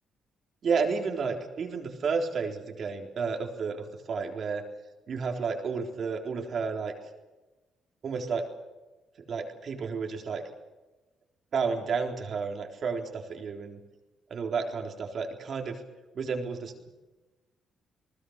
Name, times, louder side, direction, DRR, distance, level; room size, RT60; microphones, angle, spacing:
voice 1, 0.6-4.6 5.1-6.9 8.0-8.4 9.3-10.4 11.5-13.8 14.3-15.8 16.1-16.9, right 5 dB, 55° right, 3 dB, 3.8 m, -31 dB
29.0 x 19.5 x 6.7 m, 1.1 s
cardioid pair, 90°, 0 cm